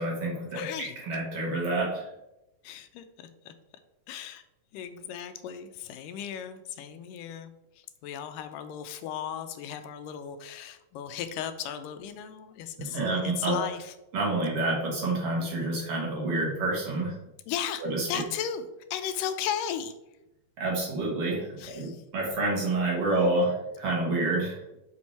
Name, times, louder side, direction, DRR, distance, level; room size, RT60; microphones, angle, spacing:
voice 1, 0.0-2.1 12.8-13.6 14.1-17.2 17.8-18.1 20.6-24.6, right 2 dB, 55° right, -2 dB, 2.1 m, -28 dB
voice 2, 0.5-1.0 2.6-3.5 4.1-4.4 4.7-13.9 17.5-17.8 18.1-19.9 21.6-22.0, left 9 dB, 85° left, 9 dB, 2.2 m, -36 dB
6.2 x 6.2 x 4.2 m, 0.92 s
omnidirectional pair, 3.8 m